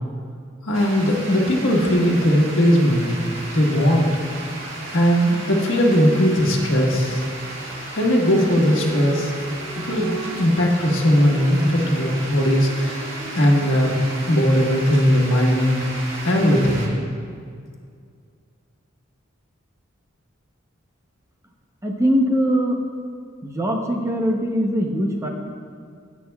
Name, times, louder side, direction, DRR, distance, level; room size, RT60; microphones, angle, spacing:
voice 1, 0.6-3.1 3.5-4.1 4.9-7.2 7.9-9.3 9.7-14.0 14.3-15.8 16.2-16.8, equal, 70° left, -1 dB, 1.4 m, -18 dB
sound 1, 0.7-16.9, right 2 dB, 70° right, 1.7 m, -34 dB
sound 2, 8.2-13.6, right 2 dB, 35° right, 1.0 m, -39 dB
voice 2, 21.8-22.8 23.4-25.3, equal, 15° right, 1 dB, 0.8 m, -21 dB
16.0 x 8.4 x 2.3 m, 2.2 s
head